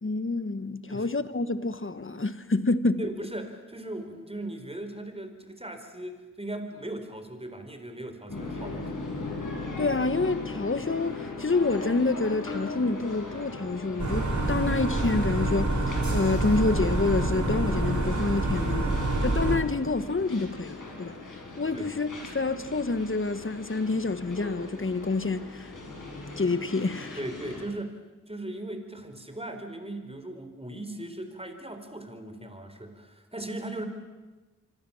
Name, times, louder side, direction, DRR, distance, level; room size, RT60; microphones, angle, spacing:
voice 1, 0.0-3.0 9.8-21.2 21.6-22.1 22.3-25.7 26.4-27.2, left 3 dB, 40° left, 1.4 m, -28 dB
voice 2, 3.0-8.9 21.7-21.9 27.2-28.0 28.3-33.9, right 1 dB, 20° right, 4.3 m, -38 dB
sound 1, 8.3-27.6, left 3 dB, 80° left, 6.1 m, -39 dB
sound 2, 14.0-19.6, right 2 dB, 65° right, 4.9 m, -27 dB
26.0 x 25.5 x 7.2 m
wide cardioid pair, 50°, 31 cm